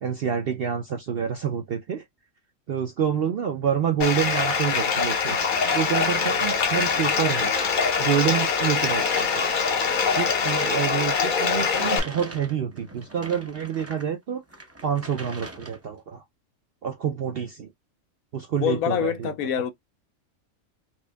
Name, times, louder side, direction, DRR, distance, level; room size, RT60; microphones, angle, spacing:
voice 1, 0.0-2.0 2.7-5.4 5.7-7.5 8.0-9.5 10.2-14.4 14.8-16.2 16.8-17.7 18.3-19.3, right 8 dB, 60° right, 0.6 m, -27 dB
Bathtub (filling or washing), 4.0-12.0, left 5 dB, 45° left, 0.7 m, -23 dB
sound 1, 4.1-7.9 8.2-14.1 14.5-15.9, right 1 dB, 20° right, 0.3 m, -41 dB
voice 2, 18.6-19.7, left 10 dB, 80° left, 1.1 m, -25 dB
4.3 x 2.6 x 2.2 m
omnidirectional pair, 1.5 m